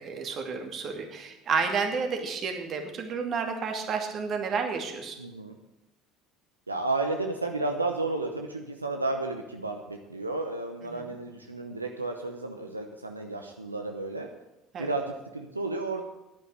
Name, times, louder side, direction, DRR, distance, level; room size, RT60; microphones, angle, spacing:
voice 1, 0.0-5.2 10.9-11.0 14.7-14.9, right 5 dB, 45° right, 4 dB, 2.5 m, -31 dB
voice 2, 5.2-5.6 6.7-14.3 14.8-16.0, right 2 dB, 90° right, 4 dB, 0.8 m, -32 dB
10.5 x 9.5 x 8.2 m, 0.96 s
figure-of-eight pair, 65°, 0 cm